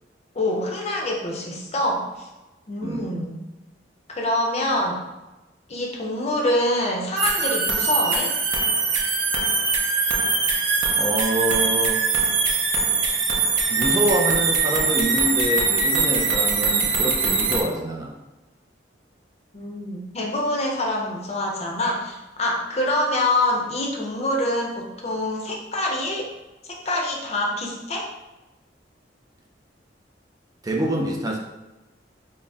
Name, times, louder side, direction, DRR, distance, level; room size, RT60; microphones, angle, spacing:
voice 1, 0.3-2.3 2.7-3.4 4.1-5.0 5.7-8.3 19.5-26.3 26.8-28.1, left 1 dB, 35° left, -1 dB, 0.7 m, -25 dB
sound 1, 7.2-17.6, right 4 dB, 90° right, 0.5 m, -22 dB
voice 2, 11.0-12.0 13.7-18.1 30.6-31.4, right 1 dB, 20° right, -1 dB, 0.4 m, -26 dB
4.0 x 2.0 x 3.4 m, 1.1 s
head